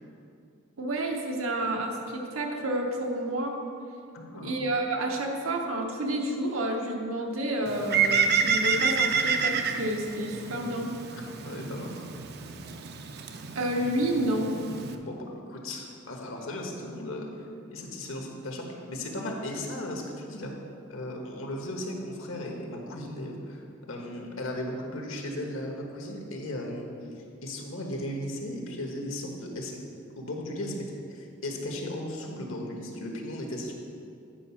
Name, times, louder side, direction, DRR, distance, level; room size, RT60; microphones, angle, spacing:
voice 1, 0.8-3.6 4.4-10.9 13.5-14.5, right 1 dB, 90° right, 1 dB, 1.1 m, -30 dB
voice 2, 4.1-4.6 11.1-12.1 15.0-20.5 20.9-26.9 27.1-29.8 30.2-33.7, left 1 dB, 75° left, 1 dB, 1.2 m, -36 dB
Bird, 7.7-15.0, right 6 dB, 50° right, 0.5 m, -29 dB
8.9 x 4.8 x 5.7 m, 2.5 s
head